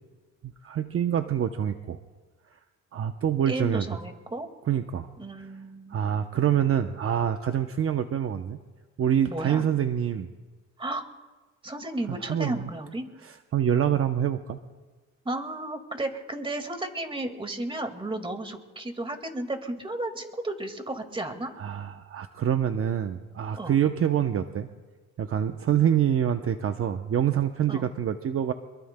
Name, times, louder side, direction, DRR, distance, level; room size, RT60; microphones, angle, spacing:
voice 1, 0.6-2.0 2.9-3.9 4.7-5.1 5.9-8.6 9.0-10.3 12.1-12.6 13.2-14.6 21.6-24.7 25.2-28.5, right 9 dB, 50° right, 7 dB, 0.7 m, -26 dB
voice 2, 3.5-4.5 5.2-6.0 9.3-9.7 10.8-11.0 11.6-13.1 15.3-21.5 23.5-23.8 27.7-27.9, right 1 dB, 15° right, 6 dB, 1.9 m, -33 dB
25.5 x 22.5 x 2.2 m, 1.3 s
cardioid pair, 90°, 30 cm